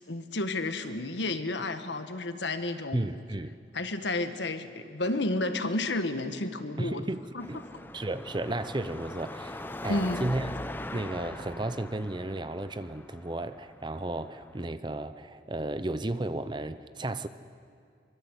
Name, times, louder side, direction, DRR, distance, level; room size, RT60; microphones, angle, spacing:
voice 1, 0.0-3.1 3.7-7.0 7.3-7.5 9.9-10.2, left 2 dB, 70° left, 9 dB, 1.4 m, -31 dB
voice 2, 2.9-3.6 6.8-7.6 7.9-10.5 10.9-17.3, right 2 dB, 25° right, 12 dB, 0.6 m, -33 dB
Car passing by / Traffic noise roadway noise / Engine, 7.4-14.7, left 1 dB, 10° left, 0.7 m, -41 dB
24.5 x 23.5 x 8.1 m, 2.2 s
head